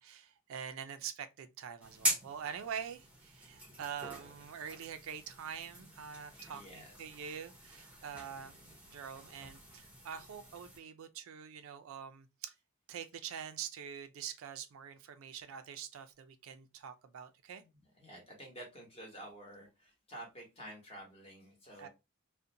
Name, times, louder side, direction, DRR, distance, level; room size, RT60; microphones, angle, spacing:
voice 1, 0.0-8.6 8.9-12.6 12.9-17.6 21.8-21.9, right 8 dB, 70° right, 0.3 m, -45 dB
sound 1, 1.8-10.8, equal, 5° right, 0.6 m, -43 dB
voice 2, 6.5-7.0 7.3-7.4 17.6-21.9, right 1 dB, 25° left, 1.0 m, -50 dB
2.5 x 2.1 x 2.6 m
head